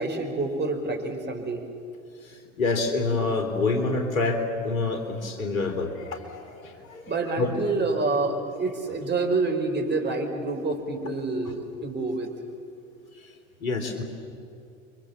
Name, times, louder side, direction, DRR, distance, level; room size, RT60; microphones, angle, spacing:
voice 1, 0.0-1.6 7.1-12.3, right 3 dB, 25° right, 4 dB, 4.8 m, -27 dB
voice 2, 2.6-7.0 7.4-7.5 13.6-14.0, left 3 dB, 75° left, 6 dB, 3.5 m, -27 dB
29.5 x 24.0 x 7.3 m, 2.6 s
figure-of-eight pair, 80°, 41 cm